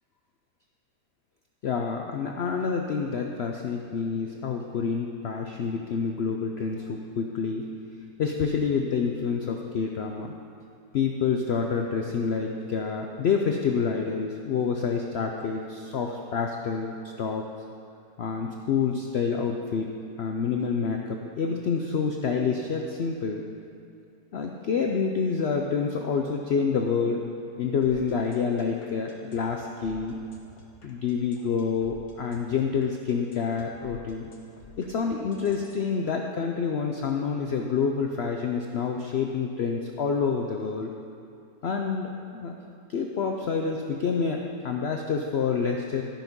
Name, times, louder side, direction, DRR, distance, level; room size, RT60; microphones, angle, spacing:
voice 1, 1.6-7.7 8.2-10.3 10.9-17.5 18.2-19.9 20.2-23.5 24.3-27.3 27.6-30.2 30.8-34.3 34.8-40.9 41.6-42.5 42.9-46.0, left 5 dB, 70° left, 2 dB, 0.6 m, -28 dB
sound 1, 27.8-35.8, left 2 dB, 45° left, 1.7 m, -51 dB
13.5 x 5.9 x 5.2 m, 2.5 s
omnidirectional pair, 1.8 m